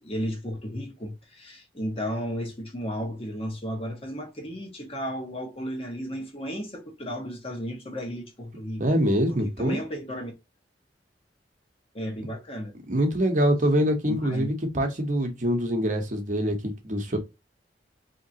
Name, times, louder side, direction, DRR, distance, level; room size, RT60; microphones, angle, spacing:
voice 1, 0.0-10.3 11.9-12.7 14.1-14.5, equal, 35° left, 1.2 m, -34 dB
voice 2, 8.8-9.8 12.9-17.2, equal, 45° right, 0.9 m, -24 dB
3.5 x 2.9 x 2.7 m
head